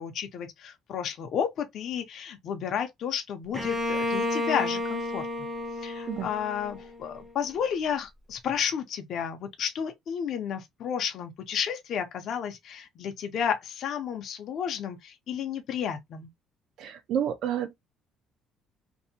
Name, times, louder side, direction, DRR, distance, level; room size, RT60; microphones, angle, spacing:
voice 1, 0.0-5.5 5.8-16.3, left 8 dB, 50° left, 0.5 m, -32 dB
Bowed string instrument, 3.5-7.3, left 2 dB, 5° right, 0.5 m, -31 dB
voice 2, 16.8-17.7, right 9 dB, 60° right, 0.4 m, -30 dB
2.6 x 2.0 x 2.6 m
cardioid pair, 150°, 0 cm